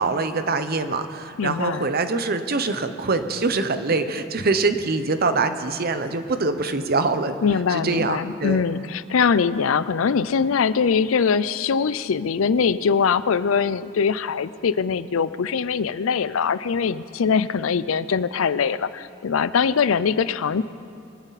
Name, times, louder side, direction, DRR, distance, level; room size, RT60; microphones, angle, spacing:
voice 1, 0.0-7.4 7.7-8.6, right 3 dB, 50° right, 9 dB, 0.8 m, -24 dB
voice 2, 1.4-1.9 7.4-20.6, left 6 dB, 85° left, 16 dB, 0.5 m, -22 dB
23.0 x 12.5 x 4.1 m, 2.7 s
head